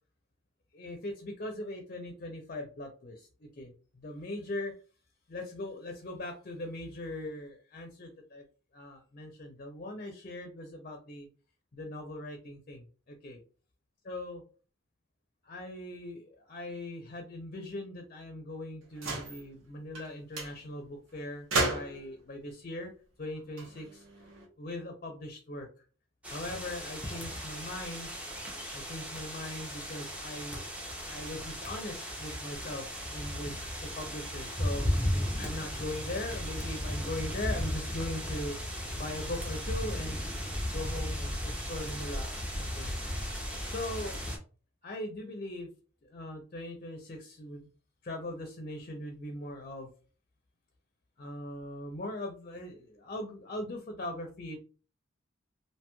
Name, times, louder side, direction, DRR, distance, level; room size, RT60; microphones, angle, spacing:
voice 1, 0.7-4.7 5.3-8.4 8.7-11.3 11.7-13.4 14.1-14.4 15.4-22.9 23.2-24.0 24.6-25.7 26.3-28.1 28.7-30.7 31.0-34.9 35.4-40.4 40.7-42.9 43.7-44.2 44.8-45.7 46.0-47.7 48.0-49.9 51.2-54.6, left 1 dB, 45° left, 3 dB, 0.5 m, -40 dB
sound 1, 18.9-19.4 19.9-20.1 20.3-20.5 21.5-22.1 23.4-24.4, right 2 dB, 80° right, 0.9 m, -33 dB
sound 2, 26.2-44.4, equal, 5° right, 0.6 m, -36 dB
3.0 x 2.7 x 2.2 m, 0.37 s
head